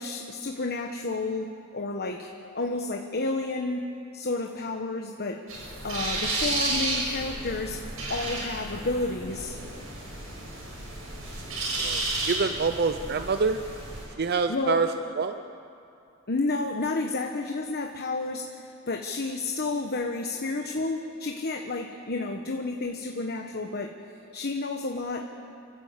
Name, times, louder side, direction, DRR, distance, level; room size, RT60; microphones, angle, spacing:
voice 1, 0.0-2.3 2.5-3.9 4.1-5.4 5.8-7.8 8.1-9.6 14.5-14.8 16.3-23.9 24.3-25.5, left 3 dB, 50° left, 3 dB, 1.2 m, -31 dB
sound 1, 5.5-14.1, right 2 dB, 85° right, 7.2 m, -32 dB
voice 2, 11.8-13.6 14.2-14.9 15.2-15.4, right 4 dB, 50° right, 9 dB, 0.6 m, -26 dB
29.0 x 13.5 x 8.2 m, 2.6 s
head